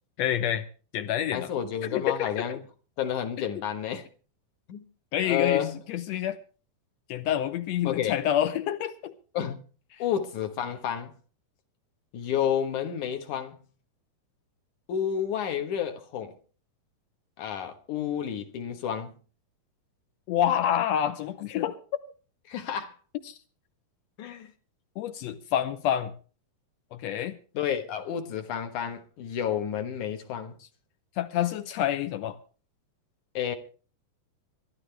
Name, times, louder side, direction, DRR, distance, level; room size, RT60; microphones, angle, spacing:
voice 1, 0.2-0.7 0.9-1.5 1.9-2.4 5.1-6.4 7.1-9.1 20.3-21.8 23.3-23.4 25.0-26.1 26.9-27.4 31.2-32.4, left 10 dB, 85° left, 1.5 m, -27 dB
voice 2, 1.3-2.6 3.0-4.1 4.7-4.8 5.2-5.8 7.8-8.1 9.3-9.6 10.0-11.1 12.1-13.6 14.9-16.3 17.4-19.1 22.5-23.0 24.2-24.5 27.5-30.6 33.3-33.6, left 9 dB, 65° left, 2.5 m, -30 dB
24.5 x 11.5 x 3.3 m
omnidirectional pair, 4.1 m